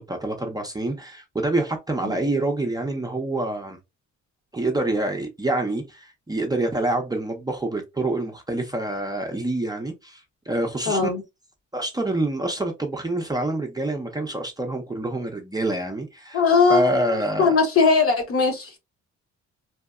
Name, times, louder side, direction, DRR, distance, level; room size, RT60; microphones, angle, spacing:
voice 1, 0.0-3.8 4.5-11.0 11.7-16.4 16.7-17.6, right 1 dB, 15° right, 0.6 m, -26 dB
voice 2, 10.9-11.2 16.3-18.8, left 4 dB, 50° left, 0.9 m, -20 dB
2.8 x 2.2 x 2.3 m
cardioid pair, 90°, 30 cm